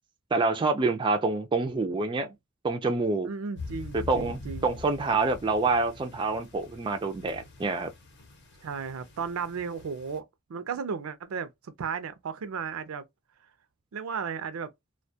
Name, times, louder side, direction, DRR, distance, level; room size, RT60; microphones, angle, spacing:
voice 1, 0.3-2.3 2.6-3.3 3.9-7.9, right 3 dB, 25° right, 0.3 m, -27 dB
voice 2, 3.2-4.7 8.6-13.1 13.9-14.7, right 6 dB, 90° right, 0.4 m, -35 dB
sound 1, 3.6-10.2, left 3 dB, 55° left, 0.7 m, -44 dB
2.2 x 2.1 x 2.6 m
head